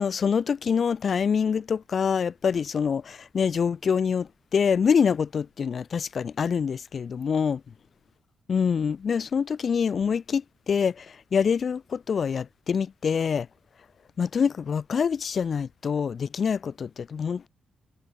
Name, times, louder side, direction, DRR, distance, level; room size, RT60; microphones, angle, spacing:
voice 1, 0.0-7.6 8.5-13.5 14.2-17.5, left 6 dB, 55° left, 1.4 m, -25 dB
cardioid pair, 65°, 0 cm